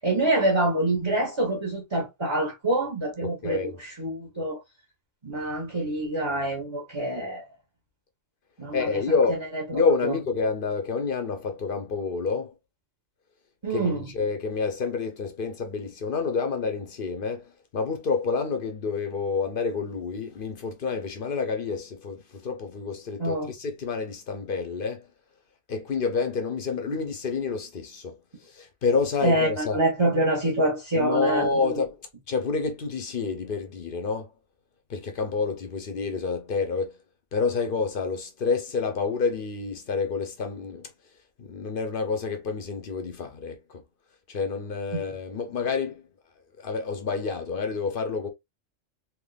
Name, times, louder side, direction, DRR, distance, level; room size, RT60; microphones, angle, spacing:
voice 1, 0.0-4.6 5.2-7.4 8.6-10.2 13.6-14.1 23.2-23.5 29.2-31.7 44.9-45.0, right 1 dB, 25° right, 1.2 m, -26 dB
voice 2, 3.2-3.8 8.7-9.4 9.7-12.5 13.7-25.1 25.7-28.2 28.5-29.8 30.9-32.0 32.3-34.3 34.9-37.0 37.3-40.9 41.4-43.8 44.3-46.0 46.6-48.3, left 4 dB, 50° left, 0.8 m, -28 dB
3.6 x 2.8 x 2.3 m
omnidirectional pair, 1.3 m